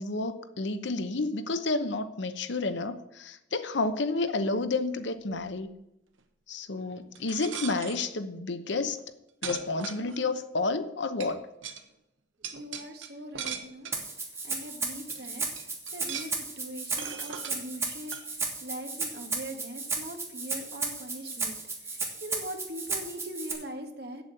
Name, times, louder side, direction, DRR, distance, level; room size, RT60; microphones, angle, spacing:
voice 1, 0.0-5.7 6.5-9.0 9.4-11.4, left 3 dB, 65° left, 11 dB, 0.8 m, -30 dB
sound 1, 7.1-8.1 9.0-9.1 9.4-10.4 11.2-11.3 11.6-11.8 12.4-14.1 14.7-14.8 15.1-15.3 15.6-16.4 17.0-17.6 18.1-18.3, right 7 dB, 80° right, 1.1 m, -38 dB
voice 2, 12.5-13.9 14.4-24.2, right 1 dB, 55° right, 5 dB, 1.5 m, -41 dB
Rattle (instrument), 13.9-23.5, right 3 dB, 15° right, 1.6 m, -34 dB
8.3 x 8.0 x 7.7 m, 0.87 s
head